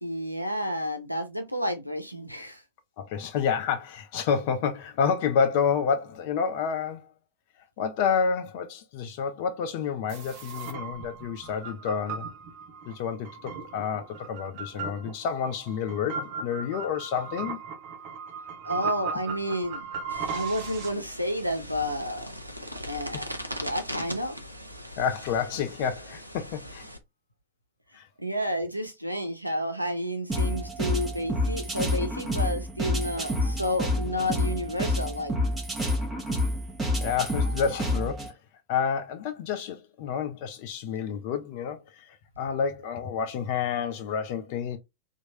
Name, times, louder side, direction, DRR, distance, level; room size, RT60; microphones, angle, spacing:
voice 1, 0.0-2.6 18.6-19.9 20.3-22.3 22.9-23.3 23.6-24.3 28.2-35.4, equal, 90° left, 0.6 m, -30 dB
voice 2, 3.0-7.1 7.8-12.3 12.8-17.6 23.1-23.2 25.0-26.9 27.9-28.1 37.0-38.4 38.7-44.8, left 6 dB, 45° left, 0.4 m, -29 dB
sound 1, 10.1-20.9, right 5 dB, 45° right, 0.8 m, -37 dB
sound 2, 20.1-27.0, equal, 90° right, 0.5 m, -40 dB
sound 3, 30.3-38.3, left 1 dB, 15° right, 1.2 m, -28 dB
2.9 x 2.5 x 2.7 m
figure-of-eight pair, 90°, 0 cm